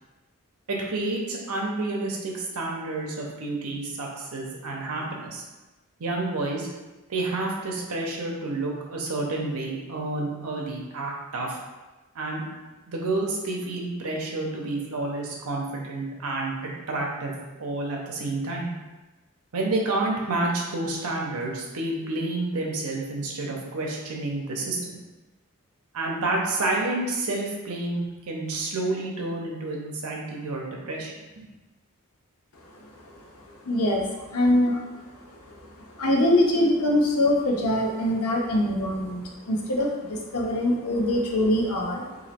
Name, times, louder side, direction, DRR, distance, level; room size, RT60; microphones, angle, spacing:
voice 1, 0.7-5.4 6.0-6.7 7.1-11.6 12.1-12.4 12.9-17.3 17.6-18.7 19.5-25.0 25.9-31.5, right 2 dB, 85° right, -1 dB, 0.7 m, -29 dB
voice 2, 32.6-33.2 33.6-42.2, left 1 dB, 85° left, 0 dB, 0.7 m, -24 dB
3.0 x 2.8 x 4.2 m, 1.1 s
head